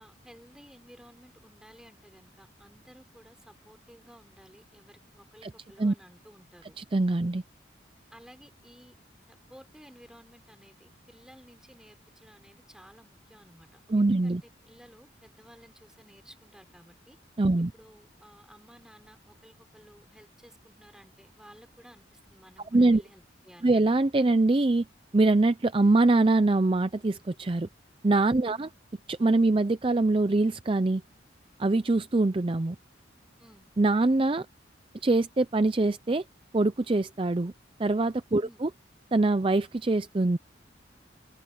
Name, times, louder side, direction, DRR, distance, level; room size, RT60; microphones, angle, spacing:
voice 1, 0.0-6.8 8.1-8.9 9.3-17.2 17.7-23.9 28.4-28.7 33.4-33.7 38.4-38.6, equal, 5° right, 4.0 m, -55 dB
voice 2, 6.8-7.4 13.9-14.4 17.4-17.7 22.7-23.0 23.6-24.9 25.1-27.7 28.0-28.7 29.1-31.0 31.6-32.8 33.8-34.5 35.0-36.2 36.5-37.5 37.8-38.7 39.1-40.4, right 2 dB, 30° right, 0.5 m, -23 dB
open air
head